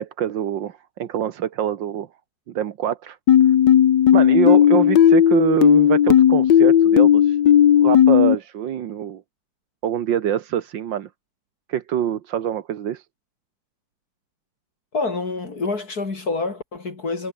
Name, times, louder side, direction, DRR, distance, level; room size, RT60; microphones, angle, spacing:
voice 1, 0.0-2.1 2.5-3.2 4.1-7.4 7.8-9.2 9.8-11.1 11.7-13.1, right 10 dB, 80° right, 1.8 m, -25 dB
sound 1, 3.3-8.4, left 10 dB, 70° left, 1.7 m, -14 dB
voice 2, 14.9-17.3, left 3 dB, 55° left, 3.5 m, -27 dB
omnidirectional pair, 2.0 m